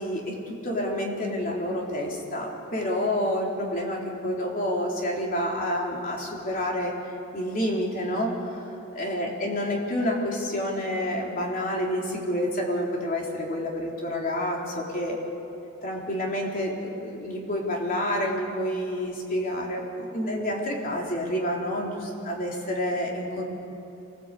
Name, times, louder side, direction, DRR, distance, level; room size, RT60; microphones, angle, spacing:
voice 1, 0.0-6.9 7.3-8.5 8.9-15.2 15.8-23.4, left 1 dB, 40° left, -1 dB, 4.0 m, -28 dB
26.0 x 19.5 x 8.5 m, 2.8 s
head